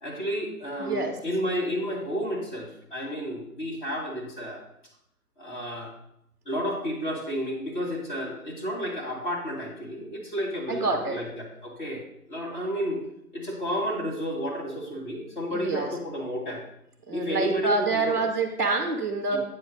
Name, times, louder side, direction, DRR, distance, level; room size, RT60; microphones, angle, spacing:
voice 1, 0.0-4.6 5.4-5.9 6.5-12.0 12.3-13.0 13.3-16.6 17.1-18.1 19.3-19.4, equal, 30° left, -2 dB, 2.1 m, -31 dB
voice 2, 0.8-1.2 10.7-11.2 15.5-15.9 17.1-19.4, right 3 dB, 10° right, 4 dB, 0.6 m, -27 dB
8.5 x 7.5 x 3.0 m, 0.76 s
figure-of-eight pair, 145°, 46 cm